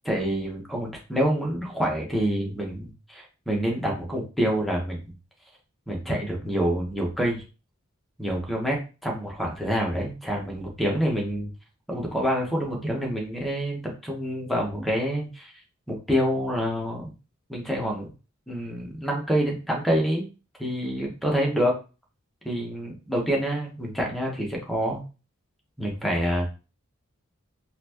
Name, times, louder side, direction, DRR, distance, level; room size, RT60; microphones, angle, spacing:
voice 1, 0.0-5.1 5.9-7.4 8.2-11.5 11.9-15.5 15.9-17.1 17.5-18.1 18.5-20.3 20.6-21.7 22.4-25.0 25.8-26.5, equal, ahead, -1 dB, 1.1 m, -27 dB
4.2 x 2.6 x 2.9 m, 0.32 s
head